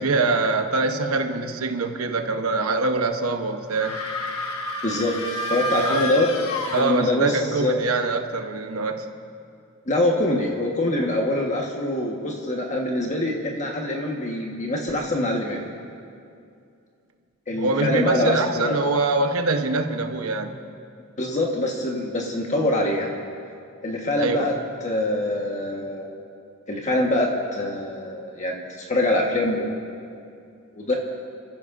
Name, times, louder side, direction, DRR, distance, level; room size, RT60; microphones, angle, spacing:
voice 1, 0.0-4.1 5.8-6.1 6.7-9.1 17.6-20.6 24.2-24.5, right 3 dB, 85° right, 6 dB, 1.0 m, -24 dB
sound 1, 3.7-7.4, left 1 dB, 85° left, 1.4 m, -30 dB
voice 2, 4.8-5.2 5.4-6.3 6.8-7.8 9.9-15.6 17.5-18.8 21.2-23.1 23.8-24.5 24.8-26.2 26.7-29.8 30.7-30.9, left 1 dB, 35° left, -1 dB, 1.3 m, -24 dB
29.5 x 14.5 x 2.6 m, 2.5 s
head